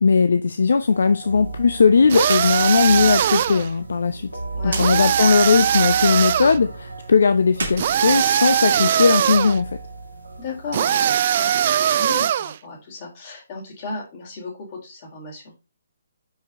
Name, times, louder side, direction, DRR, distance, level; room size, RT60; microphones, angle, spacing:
voice 1, 0.0-4.3 4.6-9.7, left 5 dB, 60° left, 0.6 m, -18 dB
sound 1, 0.7-10.9, right 3 dB, 85° right, 2.2 m, -35 dB
sound 2, 2.1-3.7 4.8-6.6 7.8-9.6 10.7-12.6, right 9 dB, 40° right, 0.3 m, -20 dB
sound 3, 2.2-2.5 2.8-2.9 4.6-4.9 7.5-8.8, right 4 dB, 60° right, 2.5 m, -32 dB
voice 2, 4.5-5.1 10.4-15.5, left 3 dB, 35° left, 4.2 m, -35 dB
10.0 x 5.1 x 3.0 m
figure-of-eight pair, 135°, 0 cm